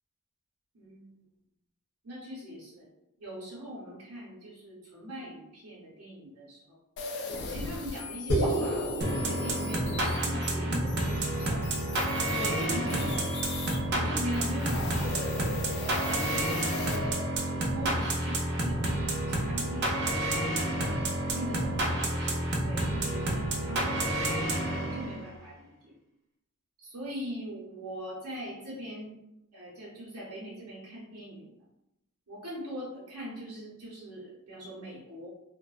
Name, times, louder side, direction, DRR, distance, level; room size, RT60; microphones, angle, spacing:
voice 1, 0.7-1.1 2.0-2.9 3.2-6.8 7.5-11.7 12.3-13.3 13.9-15.3 15.8-20.8 21.2-25.9 26.8-29.2 29.5-31.5 32.3-35.3, equal, 85° right, -6 dB, 0.8 m, -41 dB
sound 1, 7.0-13.8 14.2-17.0, left 4 dB, 50° left, 0.3 m, -40 dB
sound 2, 8.3-12.7, right 1 dB, 80° left, 0.9 m, -33 dB
sound 3, 9.0-25.3, right 1 dB, 50° right, 0.5 m, -30 dB
2.5 x 2.1 x 2.3 m, 0.86 s
head